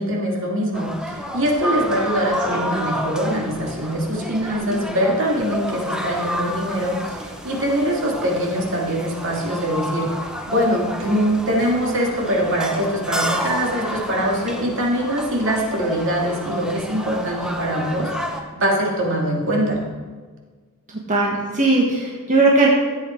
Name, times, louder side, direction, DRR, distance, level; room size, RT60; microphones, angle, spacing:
voice 1, 0.0-19.8, equal, 60° right, -1 dB, 2.5 m, -23 dB
sound 1, 0.7-18.4, equal, 5° right, 0.9 m, -30 dB
voice 2, 21.1-22.7, right 3 dB, 35° right, -3 dB, 1.5 m, -18 dB
14.5 x 8.4 x 4.5 m, 1.5 s
head